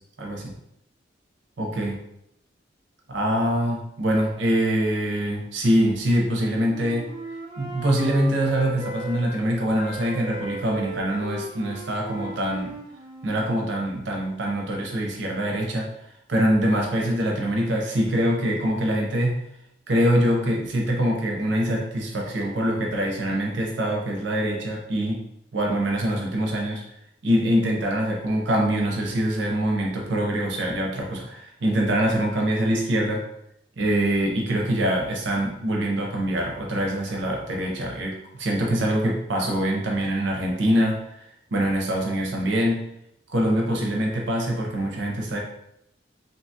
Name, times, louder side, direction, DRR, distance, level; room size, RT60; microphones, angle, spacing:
voice 1, 0.2-0.5 1.6-2.0 3.1-7.1 7.6-12.7 13.2-15.9 16.3-19.4 19.9-25.2 25.5-26.8 27.2-33.2 33.8-41.2 41.5-42.9 43.3-45.4, equal, 75° right, -1 dB, 0.6 m, -24 dB
Wind instrument woodwind instrument, 6.3-9.4 9.7-13.5, right 2 dB, 25° right, 0.4 m, -37 dB
2.7 x 2.2 x 2.7 m, 0.78 s
head